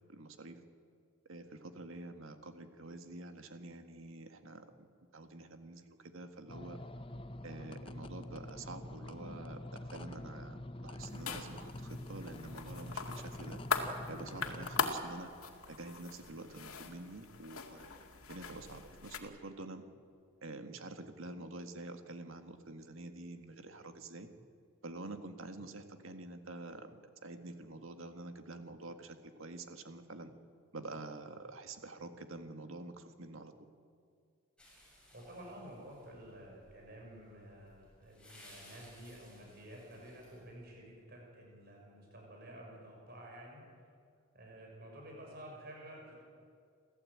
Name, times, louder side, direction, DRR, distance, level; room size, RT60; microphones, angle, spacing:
voice 1, 0.1-0.6 1.3-4.9 5.1-6.8 7.4-13.6 14.1-15.3 15.7-17.9 18.3-19.8 20.4-24.3 24.8-30.3 30.7-33.5, right 2 dB, 75° right, 7 dB, 1.9 m, -47 dB
sound 1, 6.5-14.9, left 1 dB, 25° left, 0.6 m, -46 dB
sound 2, 11.0-19.2, left 5 dB, 90° left, 2.2 m, -41 dB
sound 3, 34.6-40.6, left 1 dB, 5° left, 6.8 m, -61 dB
voice 2, 35.1-43.6 44.3-46.1, right 1 dB, 45° right, -1 dB, 6.4 m, -51 dB
28.0 x 14.5 x 8.8 m, 2.3 s
head